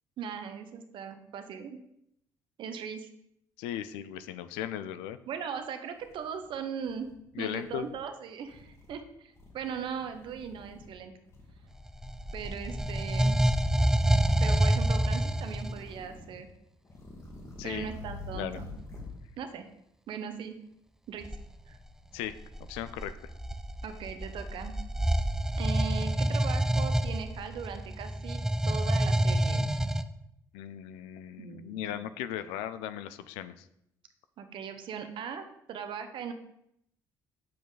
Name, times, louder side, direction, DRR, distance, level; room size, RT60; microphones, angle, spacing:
voice 1, 0.2-1.8 2.6-3.1 5.3-7.1 7.4-11.1 12.3-13.3 14.4-16.5 17.6-18.7 19.4-19.6 20.1-20.5 21.1-21.3 21.7-21.8 23.8-24.8 25.6-29.7 31.4-32.0 34.4-36.3, right 7 dB, 65° right, 8 dB, 0.8 m, -39 dB
voice 2, 3.6-5.2 7.3-7.9 17.6-17.9 18.3-18.6 22.1-23.3 30.5-33.7, left 11 dB, 85° left, 13 dB, 0.4 m, -37 dB
sound 1, 5.6-5.7 6.0-7.1 7.5-8.0 8.4-9.0 9.3-11.0 11.3-11.8 12.8-13.6 13.9-14.9 15.3-16.5 16.8-19.2, left 2 dB, 30° left, 1.6 m, -47 dB
sound 2, 11.8-15.9 21.2-21.5 22.2-30.0, right 1 dB, 5° right, 0.4 m, -27 dB
6.9 x 5.1 x 4.0 m, 0.77 s
supercardioid pair, 70°, 9 cm